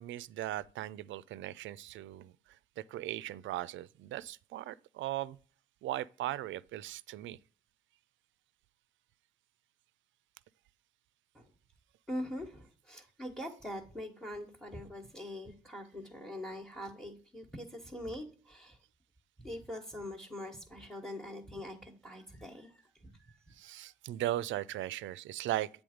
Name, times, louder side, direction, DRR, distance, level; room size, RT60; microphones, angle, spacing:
voice 1, 0.0-5.4 5.8-7.4 23.5-25.7, right 14 dB, 70° right, 0.4 m, -38 dB
voice 2, 12.1-18.8 19.4-23.9, left 1 dB, ahead, 1.1 m, -43 dB
7.8 x 3.5 x 5.0 m
cardioid pair, 90°, 20 cm